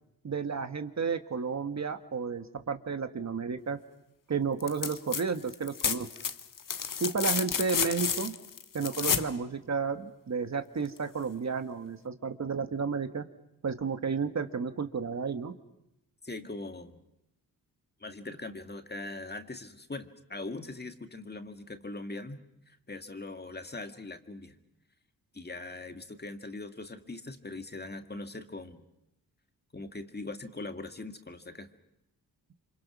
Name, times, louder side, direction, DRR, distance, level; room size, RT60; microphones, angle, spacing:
voice 1, 0.2-3.8 4.3-6.1 7.0-8.3 8.7-13.2 13.6-15.5, right 5 dB, 45° right, 8 dB, 1.5 m, -32 dB
sound 1, 4.6-5.2 5.5-9.3 11.0-11.1, left 7 dB, 55° left, 1.3 m, -31 dB
voice 2, 16.2-17.0 18.0-22.4 22.7-24.6 25.3-28.8 29.7-31.7, left 2 dB, 25° left, 7 dB, 2.1 m, -41 dB
28.5 x 25.5 x 6.1 m, 0.86 s
cardioid pair, 70°, 39 cm